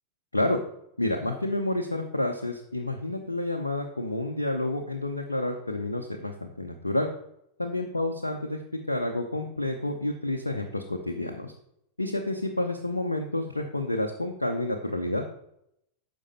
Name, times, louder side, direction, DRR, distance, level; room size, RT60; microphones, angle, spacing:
voice 1, 1.0-7.1 7.6-8.6 8.9-11.5 12.0-15.3, left 1 dB, 85° left, 3 dB, 0.8 m, -29 dB
10.0 x 6.3 x 4.1 m, 0.76 s
figure-of-eight pair, 90°, 0 cm